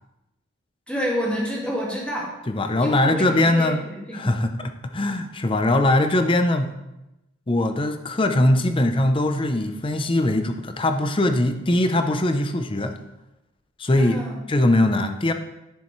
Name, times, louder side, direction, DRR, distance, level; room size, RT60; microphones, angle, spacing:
voice 1, 0.9-2.3 2.8-4.3 14.0-14.4, equal, 5° left, -4 dB, 1.8 m, -28 dB
voice 2, 2.5-3.8 4.1-6.7 7.5-13.0 13.8-14.2 14.5-15.3, left 1 dB, 25° left, 7 dB, 0.6 m, -21 dB
10.5 x 6.8 x 3.1 m, 0.94 s
head